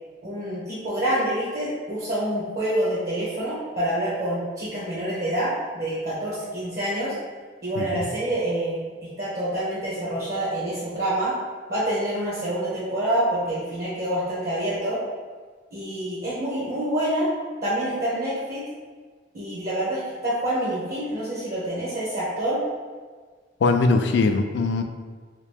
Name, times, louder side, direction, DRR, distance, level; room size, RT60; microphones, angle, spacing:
voice 1, 0.2-7.1 7.6-8.9 9.2-11.3 11.7-15.0 15.7-17.3 17.6-18.6 19.3-22.6, right 1 dB, 55° right, -8 dB, 0.9 m, -27 dB
voice 2, 23.6-24.8, left 3 dB, 65° left, 6 dB, 0.3 m, -21 dB
3.1 x 2.9 x 3.3 m, 1.5 s
head